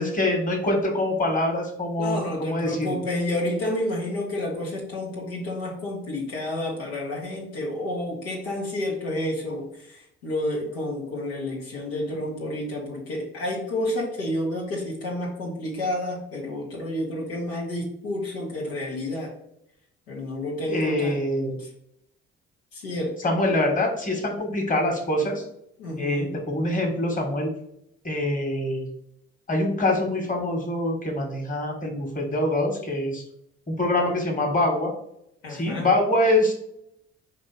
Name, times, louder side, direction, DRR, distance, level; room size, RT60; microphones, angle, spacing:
voice 1, 0.0-2.9 20.7-21.6 23.2-25.4 26.0-27.5 28.0-28.9 29.5-33.2 33.7-34.9 35.5-36.5, left 1 dB, 25° left, 1 dB, 1.5 m, -24 dB
voice 2, 2.0-19.3 20.1-21.7 22.7-23.1 25.8-26.3 35.4-35.9, left 1 dB, 85° left, -4 dB, 1.3 m, -30 dB
4.7 x 2.7 x 3.9 m, 0.77 s
hypercardioid pair, 50°, 30 cm